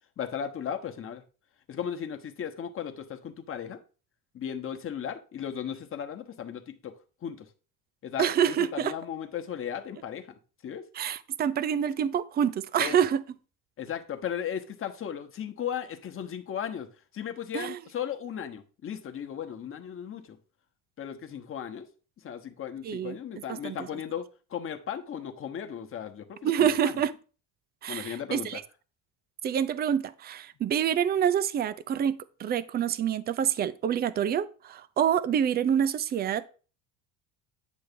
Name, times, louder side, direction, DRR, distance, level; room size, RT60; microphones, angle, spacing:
voice 1, 0.2-1.2 1.7-3.8 4.3-7.0 7.2-7.5 8.0-10.3 10.6-10.9 12.8-13.0 13.8-16.9 17.1-20.4 21.0-21.9 22.2-26.9 27.9-28.6, left 8 dB, 30° left, 1.1 m, -36 dB
voice 2, 8.2-8.9 11.0-13.2 17.5-17.8 22.8-23.2 23.5-23.8 26.4-27.1 27.8-28.6 29.4-36.4, right 9 dB, 25° right, 0.4 m, -27 dB
9.5 x 3.4 x 6.9 m
cardioid pair, 145°, 41 cm